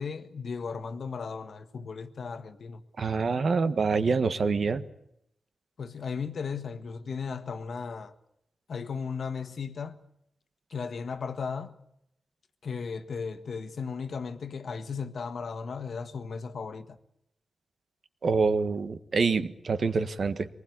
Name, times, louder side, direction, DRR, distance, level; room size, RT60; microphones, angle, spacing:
voice 1, 0.0-2.8 5.8-8.1 8.7-10.0 10.7-11.8 12.6-17.0, left 5 dB, 60° left, 1.6 m, -36 dB
voice 2, 3.0-4.8 18.2-20.5, right 4 dB, 55° right, 1.4 m, -26 dB
24.0 x 20.0 x 9.5 m
wide cardioid pair, 140°, 0 cm